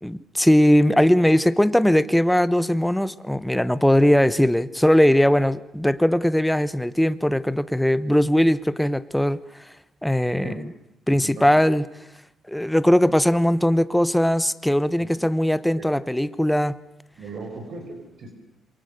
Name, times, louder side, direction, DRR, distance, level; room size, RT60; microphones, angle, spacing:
voice 1, 0.0-9.4 10.0-10.6 11.1-11.9 12.5-16.8, equal, 5° left, 15 dB, 1.0 m, -19 dB
voice 2, 17.2-18.4, right 2 dB, 60° right, 4 dB, 5.3 m, -37 dB
27.5 x 23.0 x 6.6 m, 0.81 s
cardioid pair, 90°, 0 cm